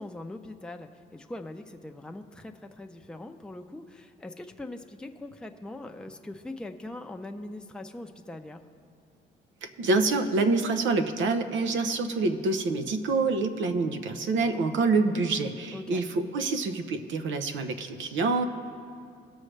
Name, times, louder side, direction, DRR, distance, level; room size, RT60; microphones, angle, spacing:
voice 1, 0.0-8.6 15.7-16.0, left 2 dB, 5° left, 4 dB, 0.6 m, -41 dB
voice 2, 9.8-18.5, right 3 dB, 70° right, 8 dB, 0.8 m, -26 dB
18.5 x 6.3 x 3.3 m, 2.4 s
cardioid pair, 90°, 20 cm